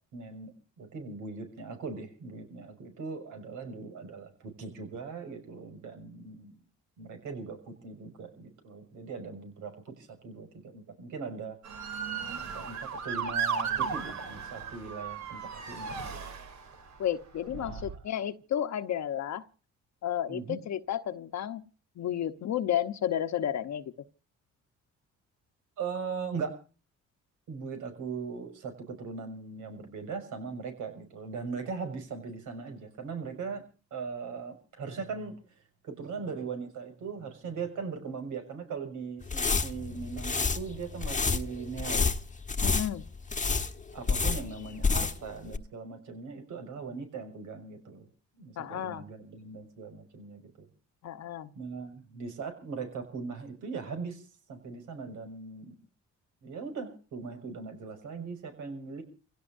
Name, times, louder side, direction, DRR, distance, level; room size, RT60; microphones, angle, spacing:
voice 1, 0.1-0.5 0.8-6.6 7.0-11.6 12.5-16.2 17.5-17.8 20.3-20.6 25.8-26.6 27.5-33.6 33.9-35.4 35.8-42.1 43.9-48.1 48.4-50.7 51.5-55.7 56.4-59.0, right 5 dB, 80° right, 6.1 m, -39 dB
Motor vehicle (road) / Siren, 11.6-16.9 17.5-18.0, right 6 dB, 65° right, 3.5 m, -35 dB
voice 2, 17.0-19.5 20.0-21.6 22.0-23.8 42.6-43.0 48.6-49.0 51.0-51.5, left 10 dB, 65° left, 1.1 m, -32 dB
sound 1, 39.2-45.3 45.5-45.6, left 4 dB, 25° left, 1.2 m, -29 dB
28.5 x 17.0 x 2.6 m
cardioid pair, 90°, 30 cm